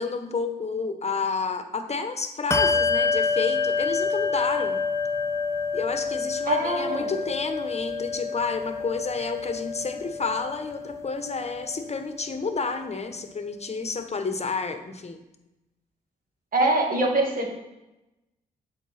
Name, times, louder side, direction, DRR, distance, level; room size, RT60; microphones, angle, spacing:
voice 1, 0.0-4.8 5.7-15.2, left 4 dB, 35° left, 8 dB, 1.1 m, -30 dB
Bell, 2.5-12.5, left 4 dB, 15° left, 0.7 m, -28 dB
voice 2, 6.5-7.1 16.5-17.5, right 2 dB, 50° right, 0 dB, 2.2 m, -23 dB
7.2 x 4.8 x 4.3 m, 0.97 s
hypercardioid pair, 40°, 19 cm